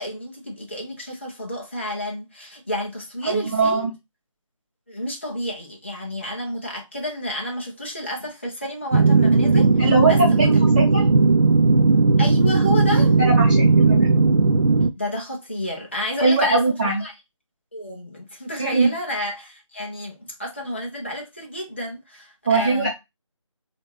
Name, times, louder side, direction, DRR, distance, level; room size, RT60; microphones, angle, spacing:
voice 1, 0.0-3.9 4.9-10.5 12.2-13.3 15.0-17.1 17.7-22.9, equal, 20° left, 0.5 m, -31 dB
voice 2, 3.2-3.9 9.7-11.0 13.2-14.1 16.2-17.0 18.6-18.9 22.4-22.9, right 3 dB, 15° right, 0.8 m, -21 dB
sound 1, 8.9-14.9, right 3 dB, 60° right, 0.5 m, -16 dB
3.7 x 2.4 x 3.2 m
figure-of-eight pair, 165°, 17 cm